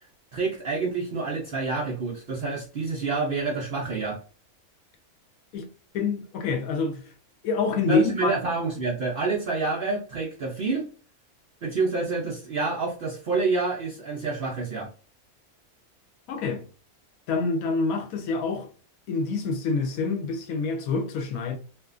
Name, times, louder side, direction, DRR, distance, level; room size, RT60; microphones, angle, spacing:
voice 1, 0.3-4.2 7.8-10.9 11.6-14.9, right 3 dB, 85° right, 0.4 m, -28 dB
voice 2, 5.5-7.0 7.4-8.4 16.3-16.6 17.3-18.7 19.1-21.6, left 4 dB, 75° left, 1.1 m, -26 dB
2.6 x 2.5 x 2.3 m
omnidirectional pair, 1.5 m